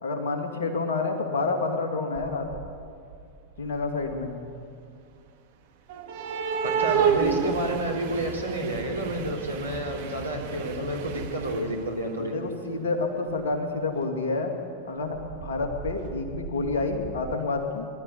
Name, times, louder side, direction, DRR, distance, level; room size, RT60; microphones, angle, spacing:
voice 1, 0.0-2.5 3.6-4.4 12.2-14.5 14.8-17.9, left 3 dB, 60° left, 3 dB, 2.5 m, -29 dB
sound 1, 2.1-2.8 3.1-4.4 5.9-12.0 13.4-13.5 14.0-14.1 15.1-17.3, right 7 dB, 50° right, 1.8 m, -31 dB
voice 2, 6.6-12.3, right 1 dB, 85° right, -1 dB, 3.4 m, -30 dB
21.5 x 12.5 x 9.8 m, 2.4 s
figure-of-eight pair, 90°, 0 cm